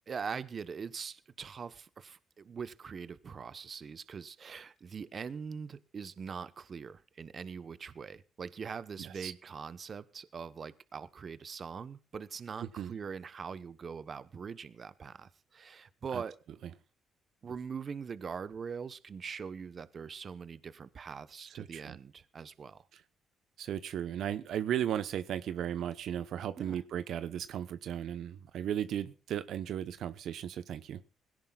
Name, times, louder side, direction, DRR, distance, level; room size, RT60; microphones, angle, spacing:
voice 1, 0.1-16.4 17.4-22.9 26.6-26.8, right 6 dB, 45° right, 14 dB, 1.0 m, -42 dB
voice 2, 9.0-9.3 12.6-12.9 16.1-16.2 21.6-22.0 22.9-23.0 23.6-31.0, right 10 dB, 70° right, 12 dB, 0.9 m, -36 dB
21.0 x 17.0 x 2.4 m, 0.35 s
cardioid pair, 90°, 0 cm